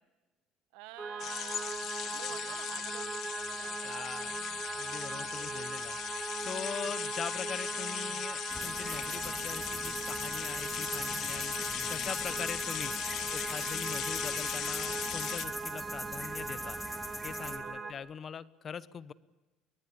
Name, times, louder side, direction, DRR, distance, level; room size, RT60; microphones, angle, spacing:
voice 1, 0.7-4.2 6.8-7.1 17.6-18.1, right 15 dB, 85° right, 11 dB, 1.5 m, -50 dB
sound 1, 1.0-17.9, right 4 dB, 25° right, 2.8 m, -39 dB
sound 2, 1.2-15.4, left 11 dB, 60° left, 1.5 m, -38 dB
voice 2, 3.8-11.6 11.9-12.9 13.3-16.8 17.2-19.1, left 7 dB, 40° left, 17 dB, 0.9 m, -42 dB
sound 3, 8.5-17.6, left 1 dB, 5° left, 2.7 m, -42 dB
24.0 x 20.0 x 8.2 m, 1.2 s
cardioid pair, 110°, 0 cm